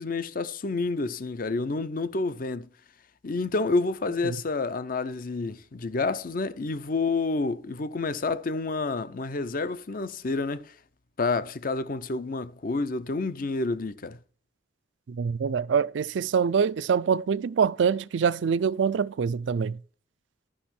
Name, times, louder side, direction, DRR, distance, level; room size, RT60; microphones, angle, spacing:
voice 1, 0.0-2.7 3.2-10.7 11.2-14.2, left 3 dB, 50° left, 0.6 m, -29 dB
voice 2, 15.1-19.8, right 6 dB, 80° right, 0.4 m, -25 dB
11.0 x 6.1 x 4.3 m
head